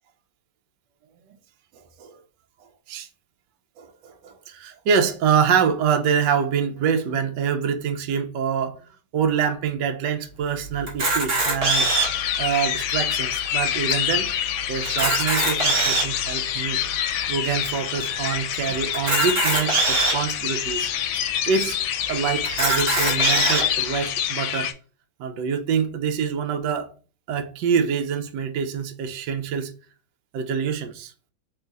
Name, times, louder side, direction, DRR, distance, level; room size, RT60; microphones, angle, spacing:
voice 1, 3.8-8.8 9.1-11.9 12.4-14.3 14.7-16.8 17.3-20.9 21.5-21.8 22.1-24.7 25.2-26.9 27.3-29.7 30.3-31.1, right 7 dB, 75° right, 1.2 m, -25 dB
Camera, 10.9-12.3 12.9-13.0 13.2-13.4 13.9-14.0 14.8-16.2 16.8-16.9 18.9-20.2 20.9-21.0 21.3-21.4 22.4-23.6, right 2 dB, 45° right, 1.5 m, -22 dB
sound 1, 11.7-24.7, left 10 dB, 85° left, 1.3 m, -26 dB
3.7 x 2.4 x 3.9 m
omnidirectional pair, 2.1 m